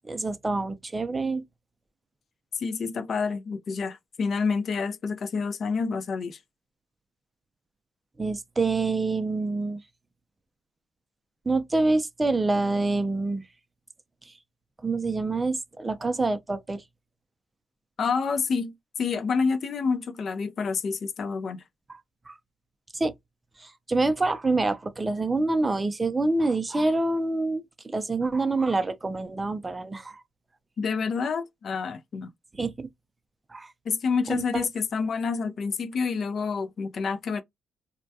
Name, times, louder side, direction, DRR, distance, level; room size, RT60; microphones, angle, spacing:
voice 1, 0.1-1.4 8.2-9.8 11.5-13.4 14.8-16.8 22.3-22.4 22.9-23.1 23.6-30.2 32.6-32.9 33.5-33.7 34.3-34.6, right 3 dB, 20° right, 0.4 m, -26 dB
voice 2, 2.6-6.4 18.0-21.6 30.8-32.3 33.9-37.4, left 5 dB, 50° left, 0.4 m, -28 dB
2.2 x 2.1 x 2.6 m
cardioid pair, 90°, 0 cm